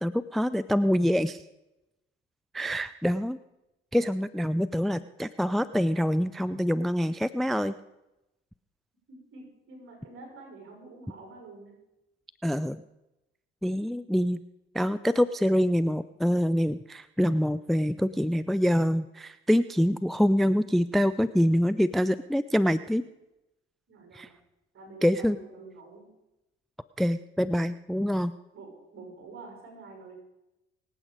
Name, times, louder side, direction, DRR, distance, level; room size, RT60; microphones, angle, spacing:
voice 1, 0.0-1.4 2.5-3.4 3.9-7.7 12.4-12.8 13.6-14.4 14.7-23.0 24.1-24.3 25.0-25.4 27.0-28.3, equal, ahead, 16 dB, 0.5 m, -25 dB
voice 2, 9.3-11.8 23.9-24.3 24.7-26.1 28.5-30.1, right 3 dB, 45° right, 1 dB, 6.3 m, -47 dB
25.0 x 8.5 x 5.2 m, 0.94 s
figure-of-eight pair, 50°, 31 cm